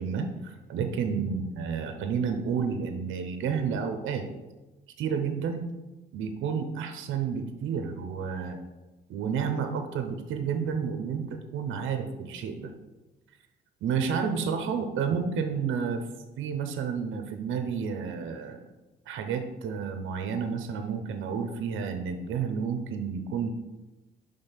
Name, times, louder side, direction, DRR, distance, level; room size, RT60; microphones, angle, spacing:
voice 1, 0.0-4.2 5.0-5.7 6.1-8.6 9.1-12.7 13.8-16.0 16.4-18.7 19.1-23.5, right 6 dB, 80° right, 6 dB, 0.7 m, -30 dB
5.2 x 3.8 x 5.8 m, 1.1 s
cardioid pair, 90°, 20 cm